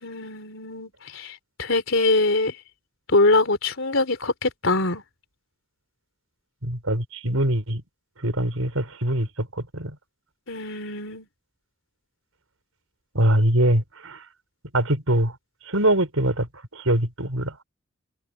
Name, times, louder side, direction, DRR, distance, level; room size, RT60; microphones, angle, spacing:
voice 1, 0.0-2.6 3.1-5.0 10.5-11.3, left 2 dB, 65° left, 3.8 m, -23 dB
voice 2, 6.6-7.8 8.2-10.0 13.1-14.2 14.7-15.4 15.7-17.6, right 1 dB, 85° right, 5.6 m, -23 dB
head